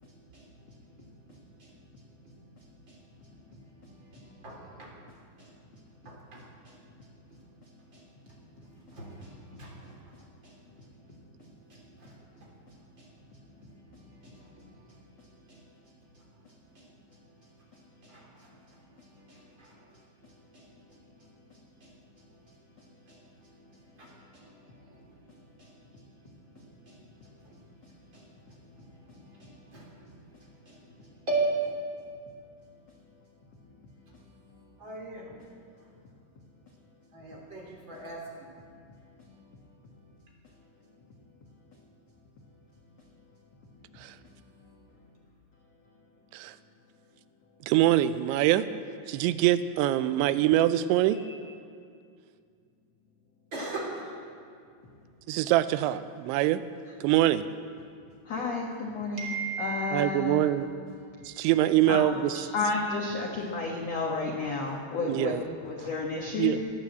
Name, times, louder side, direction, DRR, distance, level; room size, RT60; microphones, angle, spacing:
voice 1, 0.3-0.8 1.3-1.8 2.2-2.3 2.6-3.0 3.2-7.1 7.9-10.1 10.4-15.6 16.1-16.2 16.7-16.9 17.7-18.8 19.3-21.3 21.8-22.6 23.1-24.6 24.9-25.3 25.6-26.0 26.5-30.4 30.6-31.4 34.8-35.3 37.1-38.5 51.2-51.3 53.5-54.1 59.2-60.1 61.2-61.5 62.6-62.9, right 4 dB, 30° right, -2 dB, 3.3 m, -42 dB
voice 2, 14.3-14.7 19.0-19.5 24.1-24.9 29.1-29.5 33.6-33.7 34.1-34.2 34.5-34.8 39.2-39.6 44.2-45.0 58.2-60.5 61.0-61.2 61.9-65.3 65.6-66.6, left 4 dB, 85° left, 0 dB, 1.4 m, -34 dB
voice 3, 47.7-48.7 49.1-51.2 55.3-56.6 57.0-57.5 59.9-60.7 61.3-62.4 65.0-65.4 66.4-66.7, right 13 dB, 90° right, 13 dB, 2.9 m, -24 dB
19.5 x 9.4 x 7.8 m, 2.3 s
omnidirectional pair, 5.2 m